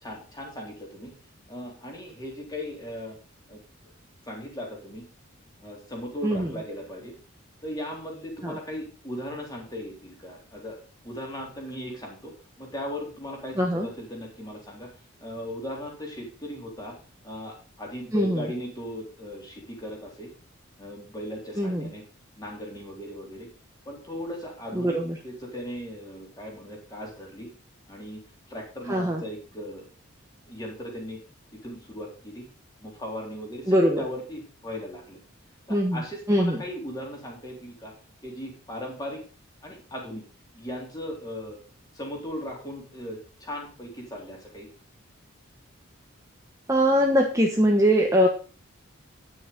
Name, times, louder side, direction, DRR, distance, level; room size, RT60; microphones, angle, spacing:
voice 1, 0.0-1.1 1.5-3.2 3.5-3.6 4.3-5.0 5.6-7.2 7.6-10.8 11.0-12.3 12.6-14.9 15.2-16.9 17.2-20.3 20.8-22.0 22.4-23.5 23.9-25.0 25.2-27.5 27.9-28.2 28.5-29.8 30.5-31.2 31.6-32.5 32.8-35.2 35.7-37.9 38.2-39.2 39.6-40.2 40.5-41.6 41.9-44.7, left 1 dB, 20° left, -1 dB, 3.5 m, -37 dB
voice 2, 13.6-13.9 18.1-18.4 21.6-21.9 24.7-25.1 28.9-29.2 33.7-34.0 35.7-36.0 36.3-36.6 46.7-48.3, equal, 15° right, 1 dB, 1.1 m, -22 dB
10.5 x 6.3 x 5.3 m, 0.38 s
head